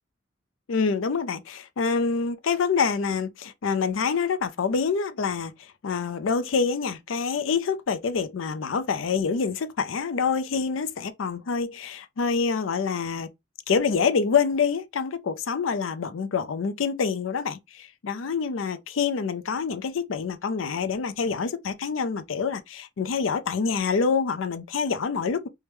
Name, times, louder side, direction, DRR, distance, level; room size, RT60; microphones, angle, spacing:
voice 1, 0.7-13.3 13.7-25.5, left 5 dB, 80° left, 0.5 m, -26 dB
4.6 x 2.1 x 3.2 m
head